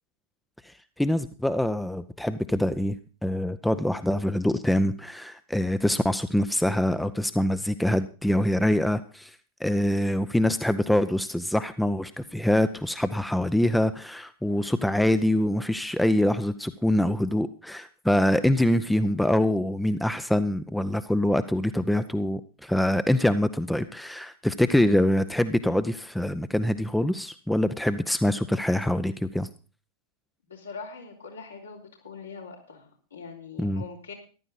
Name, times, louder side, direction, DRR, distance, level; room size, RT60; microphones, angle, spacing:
voice 1, 0.6-29.5 33.6-33.8, left 1 dB, 5° left, 12 dB, 0.7 m, -25 dB
voice 2, 30.5-34.1, left 5 dB, 75° left, 0 dB, 3.7 m, -42 dB
14.0 x 12.0 x 4.1 m, 0.37 s
figure-of-eight pair, 90°, 0 cm